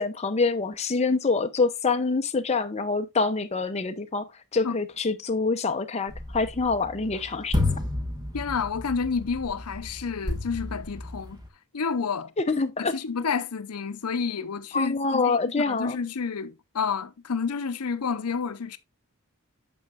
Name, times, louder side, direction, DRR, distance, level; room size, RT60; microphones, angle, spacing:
voice 1, 0.0-4.3 4.5-7.5 12.4-12.9 14.7-16.0, left 4 dB, 30° left, 0.7 m, -26 dB
sound 1, 6.1-11.5, left 2 dB, 20° right, 1.6 m, -32 dB
voice 2, 8.3-11.4 11.7-12.3 12.8-18.8, left 5 dB, 90° left, 0.7 m, -30 dB
8.9 x 7.0 x 2.4 m
head